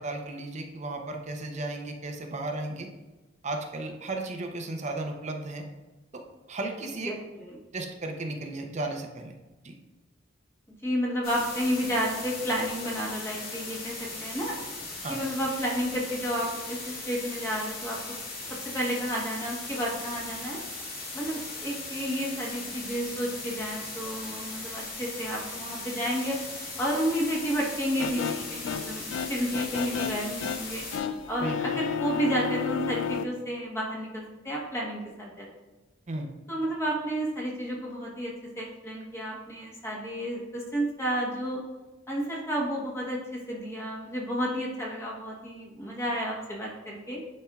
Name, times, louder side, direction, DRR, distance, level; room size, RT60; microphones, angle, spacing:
voice 1, 0.0-2.9 3.4-5.6 6.1-6.2 6.5-7.1 7.7-9.3 9.6-9.7 15.0-15.2 31.4-31.8 36.1-36.3, right 2 dB, 40° right, 4 dB, 0.7 m, -34 dB
voice 2, 7.0-7.6 10.8-14.6 15.1-18.0 18.7-20.6 21.1-26.4 26.8-30.9 31.3-35.5 36.5-41.6 42.1-47.2, equal, 15° left, -3 dB, 1.2 m, -31 dB
sound 1, 11.2-31.0, left 3 dB, 50° left, 2.1 m, -38 dB
sound 2, 28.0-33.3, left 7 dB, 70° left, 0.3 m, -32 dB
10.0 x 4.4 x 2.4 m, 1.1 s
head